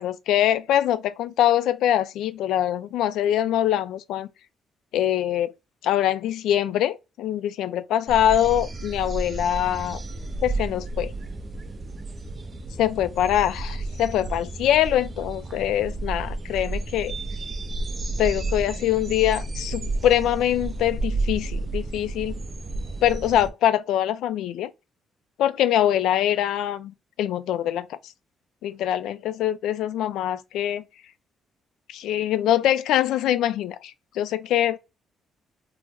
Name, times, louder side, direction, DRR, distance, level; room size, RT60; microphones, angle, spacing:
voice 1, 0.0-4.3 4.9-5.5 5.8-10.0 10.4-11.1 12.8-17.1 18.2-22.4 23.0-24.7 25.4-26.9 27.2-28.0 28.6-30.8 31.9-34.8, left 11 dB, 85° left, 0.3 m, -23 dB
sound 1, 8.1-23.5, right 2 dB, 35° right, 0.5 m, -31 dB
3.2 x 2.0 x 3.4 m
cardioid pair, 90°, 0 cm